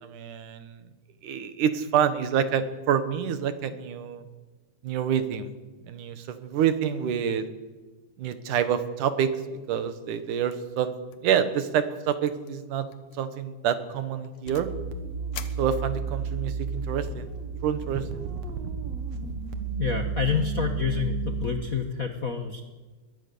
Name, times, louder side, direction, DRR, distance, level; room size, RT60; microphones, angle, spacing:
voice 1, 0.0-0.8 1.2-4.3 4.8-5.5 5.9-7.5 8.2-9.3 9.7-10.9 11.2-12.9 13.1-14.7 15.6-17.3 17.6-18.2, right 8 dB, 80° right, 10 dB, 2.9 m, -27 dB
sound 1, 10.5-10.8 11.1-11.4 11.6-11.7 12.2-12.5 12.9-13.2 13.7-14.8 15.3-16.3, left 10 dB, 80° left, 2.7 m, -45 dB
sound 2, 14.5-21.6, right 4 dB, 60° right, 2.5 m, -32 dB
voice 2, 19.8-22.6, left 6 dB, 50° left, 4 dB, 1.0 m, -28 dB
22.0 x 19.5 x 7.0 m, 1.3 s
omnidirectional pair, 3.6 m